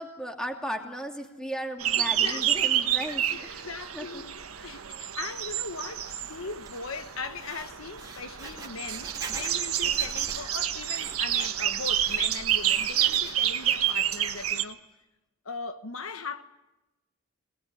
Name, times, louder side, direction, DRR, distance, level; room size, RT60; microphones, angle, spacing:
voice 1, 0.0-3.7 3.9-4.2 4.6-4.8, equal, 5° left, 2.7 m, -36 dB
sound 1, 1.8-14.6, right 11 dB, 85° right, 1.5 m, -29 dB
voice 2, 2.0-2.7 3.3-3.4 3.6-14.8 15.4-16.4, left 4 dB, 70° left, 1.3 m, -39 dB
Writing, 5.3-14.5, right 3 dB, 20° right, 3.2 m, -46 dB
25.0 x 19.0 x 10.0 m
head